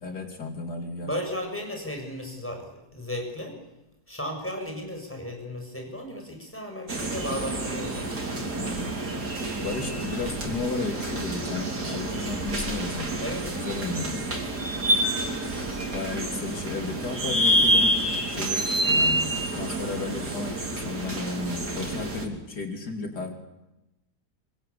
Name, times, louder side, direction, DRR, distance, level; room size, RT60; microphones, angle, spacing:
voice 1, 0.0-1.1 8.6-8.9 9.6-13.2 13.6-14.2 15.9-19.3 19.5-23.3, left 4 dB, 85° left, 5 dB, 3.6 m, -33 dB
voice 2, 1.0-3.5 4.1-7.9 13.2-13.4, left 1 dB, 5° left, 3 dB, 6.9 m, -34 dB
sound 1, 6.9-22.3, right 1 dB, 85° right, 4.2 m, -28 dB
25.5 x 23.5 x 8.5 m, 0.95 s
omnidirectional pair, 1.7 m